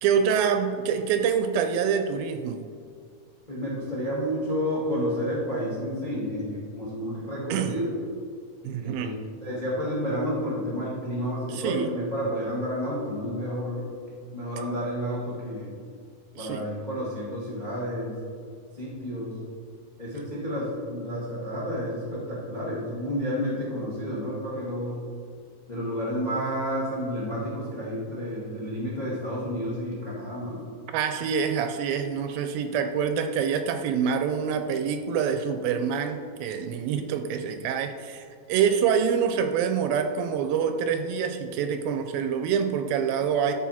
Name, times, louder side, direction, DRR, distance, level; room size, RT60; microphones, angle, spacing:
voice 1, 0.0-2.7 7.5-7.7 8.6-9.1 11.5-11.9 16.4-16.7 30.9-43.5, right 7 dB, 80° right, 8 dB, 2.2 m, -26 dB
voice 2, 3.5-7.9 8.8-13.9 14.3-15.7 16.4-18.2 18.7-19.4 20.0-25.0 25.7-30.6, equal, 75° left, -6 dB, 0.4 m, -30 dB
13.0 x 4.5 x 4.2 m, 2.2 s
omnidirectional pair, 4.4 m